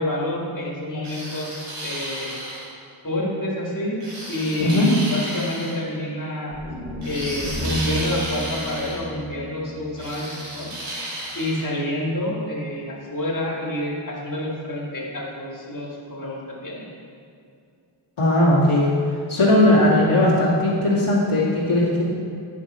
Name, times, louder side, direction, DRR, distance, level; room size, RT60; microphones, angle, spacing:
voice 1, 0.0-2.6 3.0-4.0 4.3-6.5 7.0-10.7 11.3-16.9, left 1 dB, 40° left, -4 dB, 2.0 m, -28 dB
sound 1, 1.0-2.7 4.0-5.8 7.0-9.0 10.0-11.6, right 1 dB, 90° right, 1.8 m, -33 dB
sound 2, 6.5-10.7, left 1 dB, 5° right, 1.9 m, -33 dB
voice 2, 18.2-18.9 19.3-22.1, left 1 dB, 85° left, -8 dB, 2.1 m, -18 dB
10.0 x 5.3 x 4.2 m, 2.4 s
cardioid pair, 50°, 49 cm